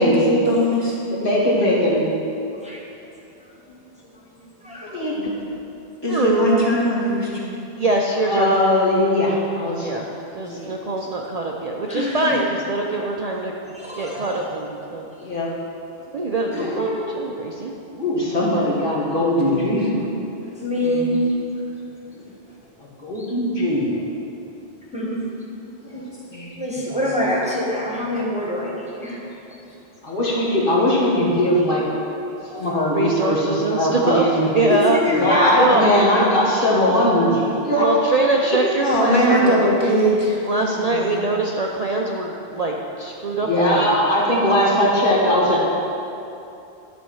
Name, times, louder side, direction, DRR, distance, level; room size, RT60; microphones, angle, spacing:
voice 1, 0.0-1.0 6.0-7.6 16.5-16.7 19.5-20.2 20.8-21.1 25.9-26.0 26.3-26.5 38.8-41.3, equal, 25° left, -6 dB, 1.7 m, -21 dB
voice 2, 1.1-2.0 4.9-5.3 8.2-9.9 10.4-10.6 15.2-15.5 16.5-17.2 17.9-20.1 22.1-22.2 23.0-24.0 30.0-31.9 32.5-34.5 35.1-38.0 38.5-38.6 43.4-45.6, left 1 dB, 55° left, -5 dB, 1.8 m, -20 dB
voice 3, 2.5-2.8 3.6-3.8 4.2-5.1 11.9-12.4 13.7-14.5 20.4-21.2 21.5-21.6 23.1-23.2 24.9-25.2 25.9-26.1 26.6-29.6 32.5-32.7 34.7-35.5, left 1 dB, 5° right, -5 dB, 1.3 m, -26 dB
voice 4, 6.1-6.7 7.8-8.5 9.8-10.1 10.3-13.5 13.9-15.1 16.1-17.7 32.9-35.0 35.6-35.8 37.8-39.7 40.5-43.9, right 2 dB, 45° right, -1 dB, 0.6 m, -23 dB
11.5 x 4.3 x 6.3 m, 2.7 s
omnidirectional pair, 1.1 m